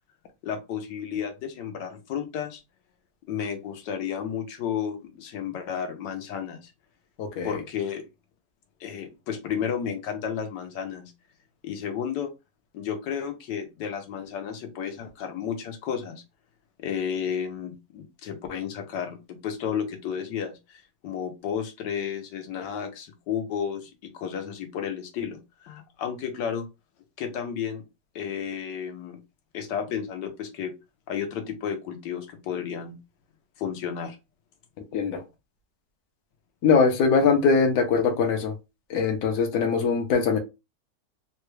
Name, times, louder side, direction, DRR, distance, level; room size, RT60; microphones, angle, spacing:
voice 1, 0.4-2.6 3.3-6.7 7.4-8.1 8.8-11.1 11.6-12.3 12.7-16.2 16.8-26.7 27.2-27.8 28.1-29.2 29.5-30.7 31.1-33.0 33.6-34.2, left 8 dB, 80° left, 1.4 m, -32 dB
voice 2, 7.2-7.5 34.9-35.2 36.6-38.5 38.9-40.4, left 5 dB, 60° left, 1.0 m, -22 dB
3.8 x 2.2 x 3.1 m
omnidirectional pair, 1.9 m